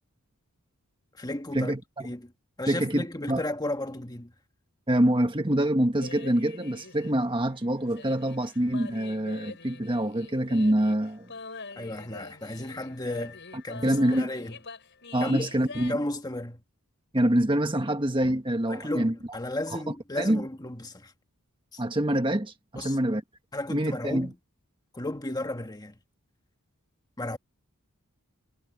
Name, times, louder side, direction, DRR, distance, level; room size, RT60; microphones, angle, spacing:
voice 1, 1.1-1.7 2.0-2.3 2.6-4.3 11.7-13.4 13.6-14.6 15.2-16.6 18.7-21.1 21.7-21.8 22.7-23.0 23.5-24.3 24.9-26.0 27.2-27.4, left 1 dB, 15° left, 1.6 m, -34 dB
voice 2, 2.7-3.4 4.9-11.3 13.8-14.3 15.1-16.0 17.1-19.1 20.2-20.4 21.8-23.2 23.7-24.3, right 1 dB, 20° right, 1.5 m, -25 dB
sound 1, 6.0-15.9, left 4 dB, 55° left, 5.6 m, -45 dB
head